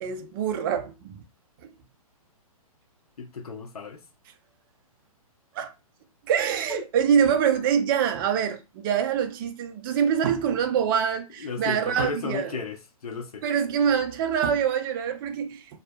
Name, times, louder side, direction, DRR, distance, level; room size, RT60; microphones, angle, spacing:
voice 1, 0.0-1.2 1.6-1.7 5.5-5.7 6.3-12.5 13.4-15.8, right 8 dB, 35° right, 0.4 m, -25 dB
voice 2, 3.2-4.0 6.7-6.8 11.4-12.8 13.0-13.4, left 4 dB, 80° left, 0.7 m, -34 dB
2.6 x 2.1 x 2.2 m
hypercardioid pair, 135°, 19 cm